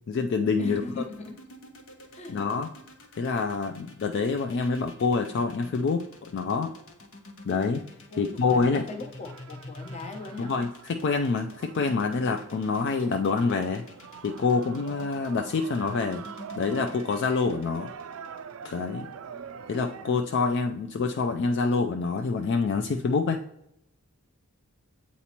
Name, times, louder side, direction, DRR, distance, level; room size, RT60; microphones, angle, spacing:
voice 1, 0.1-0.8 2.3-2.7 3.2-6.7 7.5-7.8 8.2-8.8 10.4-13.8 14.2-16.3 16.6-17.9 18.6-19.1 19.7-23.4, left 4 dB, 50° left, 5 dB, 0.3 m, -26 dB
voice 2, 0.6-1.4 2.1-2.4 8.1-10.6, left 2 dB, 30° left, 2 dB, 0.9 m, -38 dB
sound 1, 1.0-19.1, left 2 dB, 70° left, 1.1 m, -48 dB
sound 2, 8.8-20.2, right 7 dB, 65° right, 0.4 m, -45 dB
8.4 x 4.1 x 2.9 m, 0.82 s
head